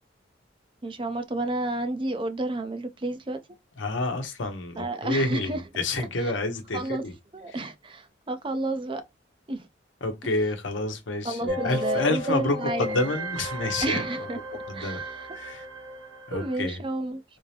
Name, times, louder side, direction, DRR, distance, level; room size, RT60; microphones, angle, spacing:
voice 1, 0.8-3.4 4.8-5.6 6.7-7.0 7.3-9.0 9.5-9.7 11.2-13.0 13.8-14.4 14.7-15.3 16.3-17.2, right 2 dB, 25° right, 0.5 m, -30 dB
voice 2, 3.8-7.2 7.5-7.6 10.0-14.3 14.7-15.0 15.3-15.6 16.3-16.8, left 2 dB, 85° left, 0.9 m, -29 dB
sound 1, 11.5-16.6, equal, 75° right, 0.9 m, -34 dB
3.6 x 2.7 x 3.4 m
head